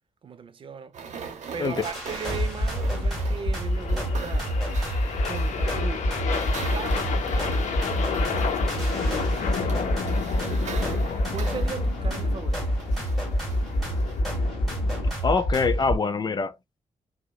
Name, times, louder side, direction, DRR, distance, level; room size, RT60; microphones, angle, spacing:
voice 1, 0.2-1.0 1.5-4.6 5.3-6.3 6.6-7.7 8.7-9.9 11.3-12.8, right 6 dB, 45° right, 0.4 m, -38 dB
sound 1, 0.9-14.2, right 6 dB, 75° right, 0.7 m, -42 dB
sound 2, 1.8-16.0, equal, ahead, 1.7 m, -27 dB
sound 3, 1.9-15.1, left 7 dB, 85° left, 0.6 m, -33 dB
voice 2, 15.2-16.8, left 4 dB, 35° left, 0.4 m, -25 dB
3.0 x 2.1 x 2.2 m
cardioid pair, 110°, 12 cm